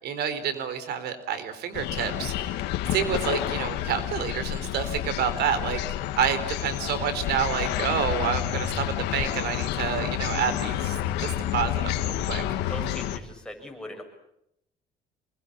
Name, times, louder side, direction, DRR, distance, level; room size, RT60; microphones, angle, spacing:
voice 1, 0.0-2.6 2.9-5.8 6.2-12.4, right 7 dB, 75° right, 11 dB, 4.3 m, -29 dB
sound 1, 1.7-13.2, left 12 dB, 90° left, 1.9 m, -29 dB
voice 2, 12.4-14.0, left 1 dB, 5° left, 2 dB, 7.3 m, -40 dB
27.0 x 21.5 x 8.7 m, 0.80 s
cardioid pair, 110°, 17 cm